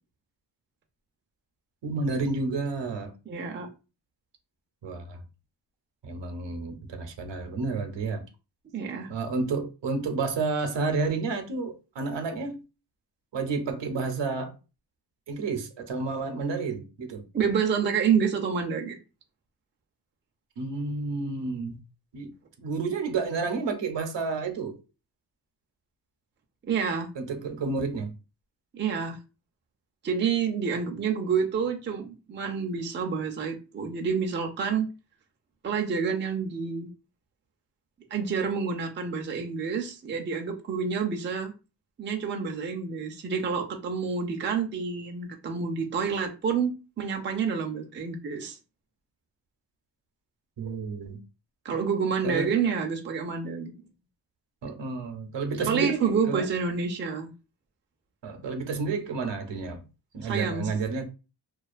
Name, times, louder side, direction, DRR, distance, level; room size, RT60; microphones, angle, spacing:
voice 1, 1.8-3.1 4.8-5.2 6.0-8.2 9.1-12.6 13.3-14.5 15.3-17.2 20.6-21.8 22.1-22.3 22.6-24.8 27.2-28.1 50.6-51.2 52.2-52.5 54.6-56.4 58.2-59.8 60.1-61.0, right 4 dB, 80° right, 0.7 m, -30 dB
voice 2, 3.3-3.7 8.7-9.1 17.3-19.0 26.7-27.1 28.7-29.2 30.0-34.9 35.6-36.9 38.1-41.5 42.0-48.6 51.6-53.8 55.6-57.3 60.2-60.7, right 6 dB, 30° right, 0.4 m, -28 dB
2.4 x 2.2 x 2.4 m
wide cardioid pair, 120°, 43 cm